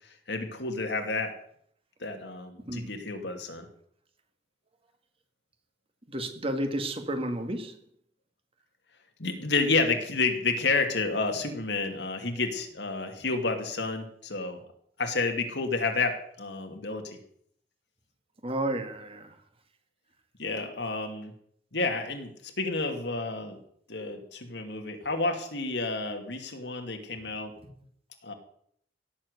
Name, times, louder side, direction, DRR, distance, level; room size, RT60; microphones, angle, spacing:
voice 1, 0.3-1.3 2.0-3.7 9.2-14.6 15.0-17.2 20.4-21.3 21.7-23.6 23.9-27.5 28.2-28.3, left 3 dB, 80° left, 5 dB, 2.6 m, -30 dB
voice 2, 6.1-7.8 18.4-19.3 27.6-27.7, right 1 dB, 35° right, 6 dB, 2.2 m, -32 dB
17.0 x 7.5 x 8.2 m, 0.66 s
head